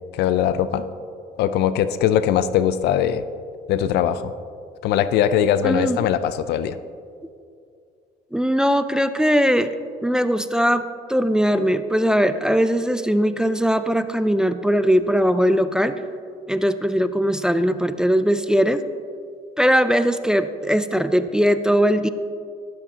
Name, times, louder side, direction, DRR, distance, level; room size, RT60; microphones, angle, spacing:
voice 1, 0.1-0.8 1.4-3.2 3.7-4.3 4.8-6.7, left 9 dB, 80° left, 13 dB, 0.5 m, -20 dB
voice 2, 5.6-6.1 8.3-9.7 10.0-16.0 16.5-18.8 19.6-22.1, equal, 5° right, 11 dB, 0.4 m, -20 dB
12.5 x 12.0 x 2.9 m, 2.3 s
cardioid pair, 110°, 17 cm